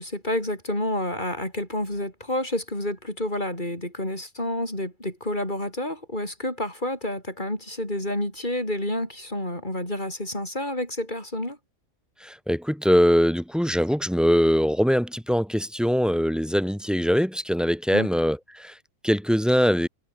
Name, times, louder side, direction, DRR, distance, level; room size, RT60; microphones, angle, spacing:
voice 1, 0.0-11.6 17.9-18.1, left 1 dB, 30° left, 7.6 m, -29 dB
voice 2, 12.2-18.7 19.0-19.9, equal, ahead, 3.9 m, -22 dB
omnidirectional pair, 1.5 m